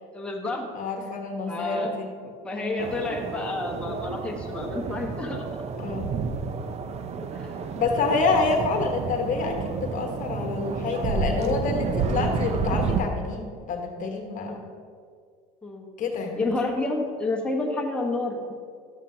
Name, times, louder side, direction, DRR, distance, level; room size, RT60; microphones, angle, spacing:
voice 1, 0.1-0.7 1.5-1.9 2.2-5.4 7.3-7.6 8.3-8.5 14.5-14.8 15.6-15.9 16.4-18.5, left 2 dB, 5° left, -2 dB, 1.2 m, -30 dB
voice 2, 0.7-2.1 2.5-2.8 5.8-6.1 7.8-14.6 16.0-16.4, left 4 dB, 45° left, 3 dB, 1.2 m, -27 dB
sound 1, 2.8-13.0, right 5 dB, 35° right, 0.6 m, -30 dB
11.5 x 7.3 x 2.8 m, 2.1 s
supercardioid pair, 100°, 19 cm